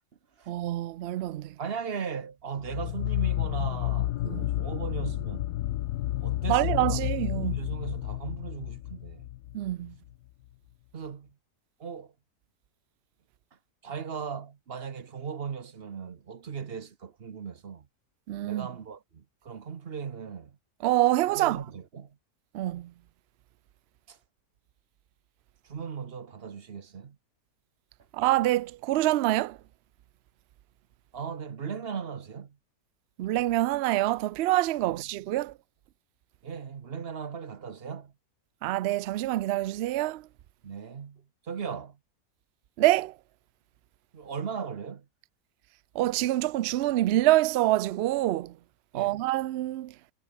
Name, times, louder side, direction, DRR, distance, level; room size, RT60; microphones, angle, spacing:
voice 1, 0.5-1.5 4.2-4.5 6.5-7.5 9.5-9.9 18.3-18.7 20.8-21.6 22.5-22.9 28.1-29.6 33.2-35.5 38.6-40.2 42.8-43.1 46.0-48.5 48.9-49.9, right 16 dB, 75° right, 0.6 m, -26 dB
voice 2, 1.6-5.5 6.2-7.0 7.4-9.3 10.9-11.3 11.8-12.1 13.8-17.9 18.4-20.6 21.3-22.2 24.1-24.2 25.6-27.2 31.1-32.6 34.8-35.0 36.4-38.1 40.6-42.0 44.1-45.1 48.9-49.2, right 6 dB, 45° right, 1.1 m, -38 dB
sound 1, 2.6-9.9, left 14 dB, 90° left, 1.2 m, -31 dB
omnidirectional pair, 1.6 m